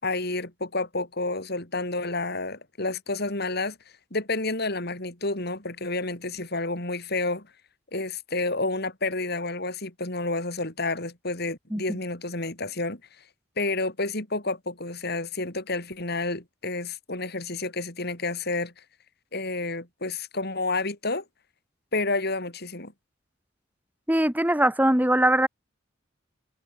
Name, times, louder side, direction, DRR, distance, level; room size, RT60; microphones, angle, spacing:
voice 1, 0.0-3.8 4.1-7.5 7.9-13.0 13.6-18.7 19.3-21.2 21.9-22.9, left 2 dB, 55° left, 5.2 m, -30 dB
voice 2, 24.1-25.5, right 1 dB, 10° right, 1.9 m, -21 dB
head